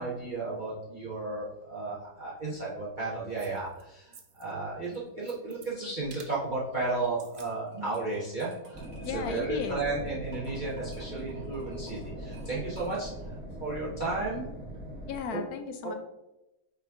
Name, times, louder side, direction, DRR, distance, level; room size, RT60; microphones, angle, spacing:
voice 1, 0.0-14.5 15.3-15.4 15.8-15.9, right 3 dB, 35° right, -6 dB, 1.1 m, -34 dB
sound 1, 3.4-3.8 4.1-4.5 4.8-5.7 6.1-6.4 7.0-7.5 7.9-8.0, right 6 dB, 60° right, 0.5 m, -52 dB
sound 2, 7.7-13.3, right 2 dB, 80° right, 2.4 m, -55 dB
sound 3, 8.7-15.2, right 1 dB, 5° right, 1.3 m, -41 dB
voice 2, 9.0-9.8 15.1-15.9, left 6 dB, 70° left, 7 dB, 1.0 m, -35 dB
8.5 x 3.2 x 3.5 m, 0.93 s
omnidirectional pair, 1.7 m